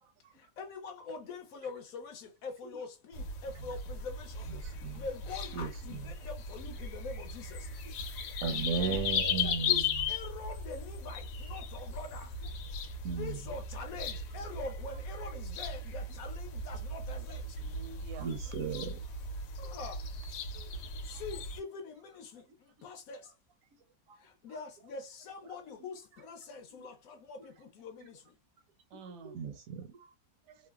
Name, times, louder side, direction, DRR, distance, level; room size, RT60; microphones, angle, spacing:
voice 1, 0.3-7.7 9.4-12.4 12.8-17.6 19.6-20.1 20.8-23.3 24.1-28.4, left 4 dB, 65° left, 1.0 m, -44 dB
sound 1, 3.1-21.6, left 4 dB, 85° left, 1.2 m, -37 dB
voice 2, 4.5-5.0 5.5-6.1 6.7-6.8 7.9-8.0 8.4-10.1 13.0-13.4 18.2-19.0 19.3-19.4 21.1-21.2 24.1-24.2 25.4-25.6 26.7-26.9 27.4-27.5 28.0-28.1 29.0-30.1, right 6 dB, 70° right, 0.8 m, -37 dB
voice 3, 8.5-9.1 17.6-18.3 20.4-21.0 28.9-29.5 30.5-30.7, right 5 dB, 85° right, 1.2 m, -50 dB
3.1 x 2.0 x 2.2 m
omnidirectional pair, 1.7 m